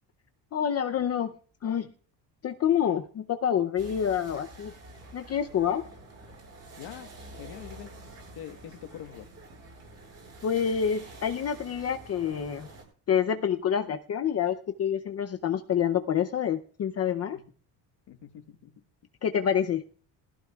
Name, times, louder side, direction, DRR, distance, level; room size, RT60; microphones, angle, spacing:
voice 1, 0.5-1.3 1.6-1.9 2.4-4.7 5.1-5.9 10.4-12.7 13.1-17.4 19.2-19.8, left 8 dB, 35° left, 6 dB, 0.6 m, -27 dB
sound 1, 3.8-12.8, right 2 dB, 35° right, 7.2 m, -48 dB
voice 2, 6.8-7.1 7.4-7.9 8.3-9.3 17.3-17.4 18.1-18.7, left 10 dB, 65° left, 7 dB, 1.4 m, -44 dB
20.5 x 15.0 x 2.4 m, 0.42 s
cardioid pair, 170°, 43 cm